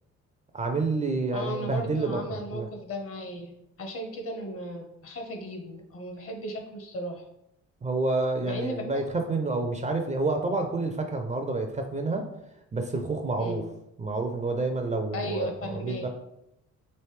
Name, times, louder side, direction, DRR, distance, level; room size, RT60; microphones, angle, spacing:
voice 1, 0.5-2.7 7.8-12.2 12.7-13.6 14.0-16.1, right 3 dB, 25° right, 4 dB, 0.4 m, -29 dB
voice 2, 1.3-7.2 8.5-8.8 13.4-13.7 15.1-16.1, equal, 50° left, 3 dB, 0.8 m, -36 dB
3.2 x 2.6 x 3.2 m, 0.84 s
cardioid pair, 90°, 30 cm